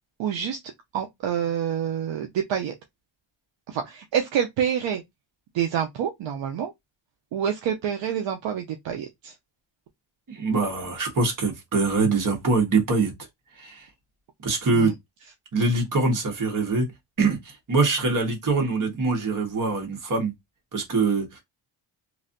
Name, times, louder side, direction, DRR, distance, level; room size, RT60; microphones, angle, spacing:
voice 1, 0.2-0.6 0.9-2.7 3.7-5.0 5.5-6.7 7.3-9.3 14.7-14.9, right 8 dB, 65° right, 0.6 m, -27 dB
voice 2, 10.3-13.1 13.6-13.9 14.4-14.9 15.5-16.9 17.2-20.3 20.7-21.4, right 3 dB, 40° right, 1.4 m, -23 dB
3.1 x 2.7 x 2.5 m
cardioid pair, 120°, 48 cm